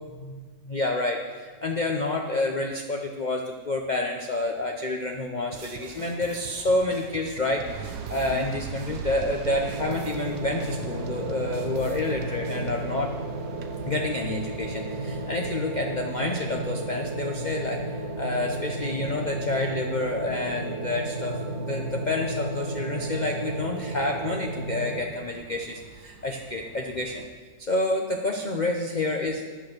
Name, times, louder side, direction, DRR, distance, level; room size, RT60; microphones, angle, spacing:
voice 1, 0.2-13.1 13.8-17.8 18.2-27.2 27.6-29.5, left 2 dB, 65° left, 2 dB, 0.4 m, -29 dB
sound 1, 5.5-12.9, right 6 dB, 75° right, 1.3 m, -43 dB
sound 2, 7.6-27.3, right 5 dB, 90° right, 1.5 m, -43 dB
sound 3, 9.4-25.0, right 2 dB, 50° right, 1.0 m, -33 dB
11.5 x 6.2 x 6.5 m, 1.4 s
omnidirectional pair, 1.9 m